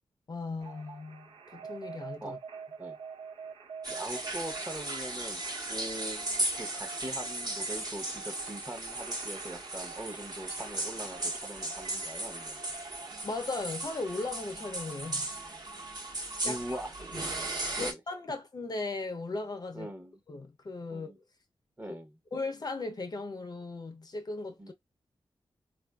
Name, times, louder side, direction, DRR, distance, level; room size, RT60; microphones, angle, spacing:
voice 1, 0.3-2.4 13.2-15.3 16.4-16.8 17.1-17.2 17.8-19.9 20.3-21.1 22.3-24.7, left 3 dB, 45° left, 0.6 m, -37 dB
sound 1, 0.6-17.8, right 5 dB, 75° right, 0.7 m, -47 dB
sound 2, 3.8-17.9, right 2 dB, 45° right, 1.1 m, -37 dB
voice 2, 3.9-5.4 5.7-12.6 16.4-16.9 17.7-18.0 19.7-20.2 20.9-21.2 21.8-22.2 24.6-24.7, right 1 dB, 20° right, 0.8 m, -42 dB
3.6 x 2.5 x 2.2 m
wide cardioid pair, 95°, 10 cm